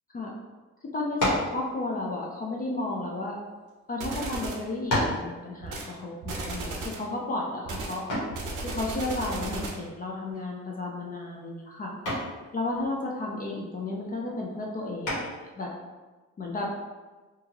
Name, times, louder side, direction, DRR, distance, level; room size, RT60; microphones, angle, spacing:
voice 1, 0.9-3.4 3.9-8.0 8.6-11.9 12.5-15.3 15.6-15.7 16.4-16.7, left 2 dB, 30° left, -2 dB, 0.4 m, -33 dB
sound 1, 1.2-1.6 2.5-3.7 4.3-4.4 4.9-5.3 8.1-8.4 10.3-10.7 11.1-11.4 12.0-12.4 15.0-15.5, left 1 dB, 75° left, 1.2 m, -29 dB
sound 2, 4.0-4.7 5.6-5.9 6.2-7.1 7.7-9.9, right 2 dB, 90° right, 0.6 m, -35 dB
2.7 x 2.4 x 2.8 m, 1.3 s
cardioid pair, 90°, 30 cm